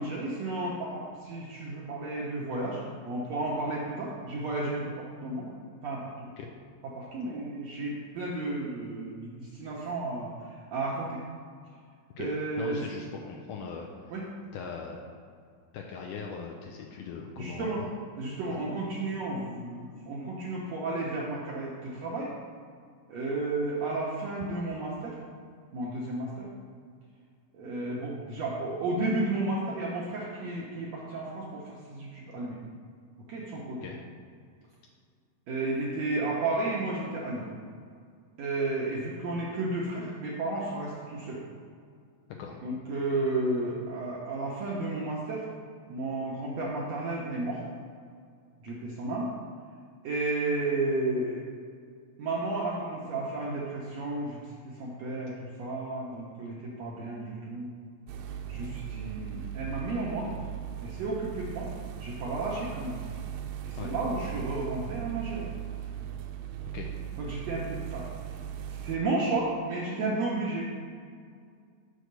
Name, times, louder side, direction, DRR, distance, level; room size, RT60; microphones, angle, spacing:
voice 1, 0.0-5.5 5.8-6.3 6.9-11.2 12.2-12.8 14.1-14.2 17.4-17.8 18.2-22.3 23.1-25.2 25.7-26.5 27.5-32.6 33.3-33.8 35.5-37.5 38.4-41.4 42.6-45.5 45.9-47.6 48.6-49.3 50.0-51.4 52.2-54.4 54.6-57.7 58.5-60.3 60.8-61.7 62.0-63.0 63.6-65.5 67.2-68.1 68.8-70.6, right 2 dB, 75° right, -5 dB, 1.6 m, -32 dB
voice 2, 12.6-13.9 14.5-15.0 15.7-17.8 18.5-18.6 33.8-34.0 42.4-42.6 63.8-63.9 66.7-66.9, left 5 dB, 80° left, 0 dB, 1.9 m, -39 dB
sound 1, 58.1-69.0, right 10 dB, 90° right, 2.4 m, -38 dB
6.3 x 4.6 x 6.7 m, 2.1 s
omnidirectional pair, 4.1 m